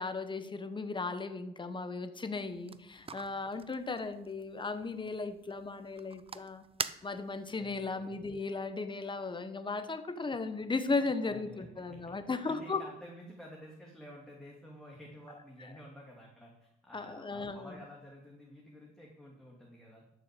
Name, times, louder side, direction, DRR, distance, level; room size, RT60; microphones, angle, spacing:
voice 1, 0.0-12.8 16.9-17.7, left 3 dB, 25° left, 10 dB, 1.2 m, -36 dB
sound 1, 2.3-7.5, right 5 dB, 30° right, 0.6 m, -45 dB
voice 2, 7.6-8.2 11.2-20.0, equal, 5° left, -3 dB, 2.7 m, -51 dB
12.0 x 6.7 x 6.8 m, 0.85 s
cardioid pair, 90°, 20 cm